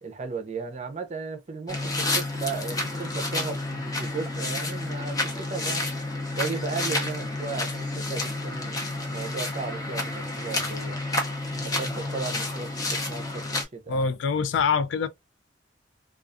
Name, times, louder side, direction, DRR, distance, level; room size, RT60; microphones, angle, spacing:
voice 1, 0.0-6.0 6.3-11.0 11.5-13.4 13.7-14.1, right 4 dB, 40° right, 0.5 m, -35 dB
sound 1, 1.7-13.6, left 2 dB, 20° left, 0.6 m, -30 dB
voice 2, 13.9-15.1, left 5 dB, 70° left, 0.3 m, -24 dB
2.4 x 2.3 x 2.4 m
head